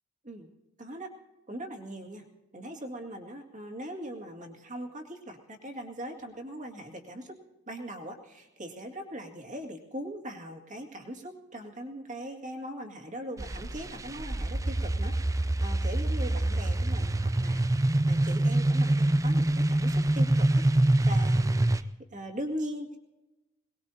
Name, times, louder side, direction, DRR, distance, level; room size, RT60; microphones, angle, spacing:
voice 1, 0.8-1.1 1.5-2.3 2.5-7.4 7.7-23.0, equal, 40° right, 2 dB, 2.1 m, -40 dB
sound 1, 13.4-21.8, right 1 dB, 15° right, 0.4 m, -25 dB
22.5 x 19.5 x 2.8 m, 1.0 s
head